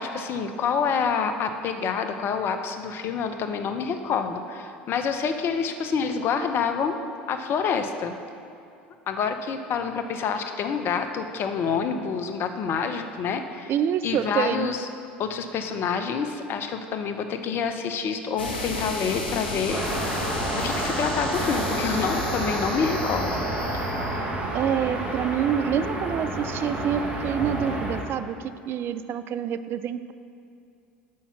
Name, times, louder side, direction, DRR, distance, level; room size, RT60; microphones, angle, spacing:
voice 1, 0.0-7.0 7.3-8.2 9.1-13.7 14.0-14.9 15.2-20.1 20.5-23.5, left 6 dB, 45° left, 7 dB, 0.7 m, -27 dB
voice 2, 13.7-14.7 24.5-30.1, right 9 dB, 45° right, 12 dB, 0.4 m, -27 dB
sound 1, 18.4-24.2, left 2 dB, 90° left, 1.1 m, -32 dB
sound 2, 19.7-28.0, right 1 dB, 25° right, 1.6 m, -29 dB
6.4 x 5.6 x 7.0 m, 2.6 s
hypercardioid pair, 75°, 5 cm